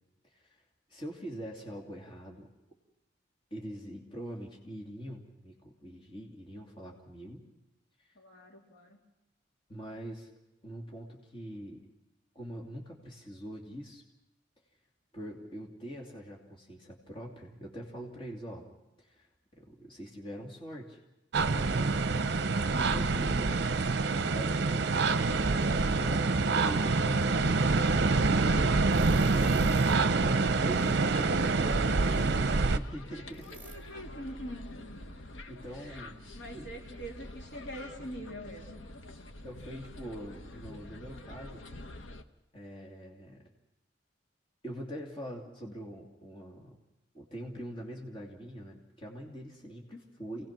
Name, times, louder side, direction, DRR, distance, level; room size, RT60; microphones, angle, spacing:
voice 1, 0.3-0.6 0.9-2.5 3.5-7.4 9.7-10.3 10.6-11.9 12.3-14.0 15.1-18.7 19.0-21.0 21.5-22.2 22.7-33.5 34.8-34.9 35.5-36.2 36.5-36.7 39.4-41.7 42.5-43.5 44.6-46.8 47.1-50.5, equal, 30° left, -1 dB, 2.7 m, -44 dB
voice 2, 8.1-9.0 22.4-23.3 33.5-35.0 35.7-38.8, equal, 65° left, 0 dB, 3.1 m, -44 dB
sound 1, 21.3-32.8, right 3 dB, 60° right, 0.7 m, -26 dB
sound 2, 26.6-42.2, left 1 dB, 85° left, 1.1 m, -46 dB
sound 3, 28.9-30.1 30.5-31.3 31.9-32.6 33.3-33.8, right 2 dB, 10° right, 2.4 m, -52 dB
28.5 x 18.5 x 6.0 m, 0.96 s
head